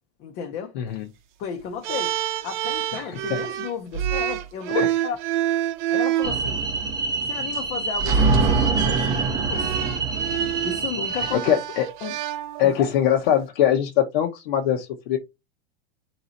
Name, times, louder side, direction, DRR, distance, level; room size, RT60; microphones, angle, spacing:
voice 1, 0.2-0.8 1.4-2.2 2.4-5.2 5.9-6.6 7.2-9.9 10.6-11.6 12.0-12.2 12.6-12.9, left 7 dB, 30° left, 0.6 m, -34 dB
voice 2, 0.8-1.1 2.9-3.4 4.7-4.9 11.1-11.9 12.6-15.2, left 10 dB, 60° left, 0.9 m, -22 dB
sound 1, 1.8-6.4 7.4-7.6 8.1-12.9, right 12 dB, 50° right, 0.7 m, -28 dB
sound 2, 6.2-11.3, right 4 dB, 15° right, 0.5 m, -24 dB
4.0 x 2.8 x 4.0 m
supercardioid pair, 165°, 30 cm